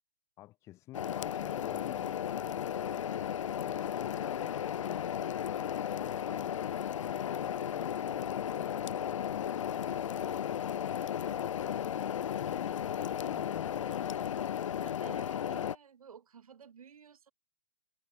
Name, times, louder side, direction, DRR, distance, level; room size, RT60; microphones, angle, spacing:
voice 1, 0.4-3.1 3.6-5.1 6.0-6.6 7.0-11.6 11.9-12.8 13.1-14.7, left 16 dB, 15° left, 2.4 m, -52 dB
sound 1, 0.9-15.8, left 9 dB, 55° left, 0.6 m, -34 dB
voice 2, 14.8-17.3, right 7 dB, 70° right, 6.4 m, -53 dB
hypercardioid pair, 175°, 19 cm